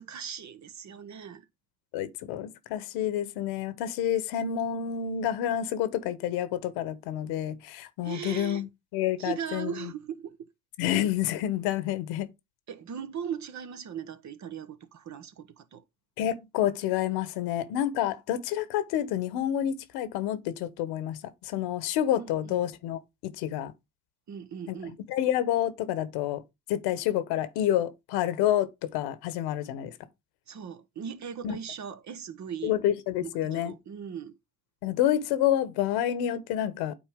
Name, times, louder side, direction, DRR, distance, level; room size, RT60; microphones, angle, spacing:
voice 1, 0.0-1.5 8.0-8.7 9.2-10.5 12.7-15.8 22.2-22.6 24.3-25.0 30.5-32.8 33.2-34.4, right 8 dB, 45° right, 1.2 m, -39 dB
voice 2, 1.9-9.9 10.8-12.3 16.2-23.7 24.7-24.8 25.1-26.4 26.7-29.9 31.4-31.6 32.6-33.7 34.8-36.9, left 11 dB, 75° left, 1.3 m, -29 dB
9.0 x 4.4 x 3.6 m
supercardioid pair, 75°, 39 cm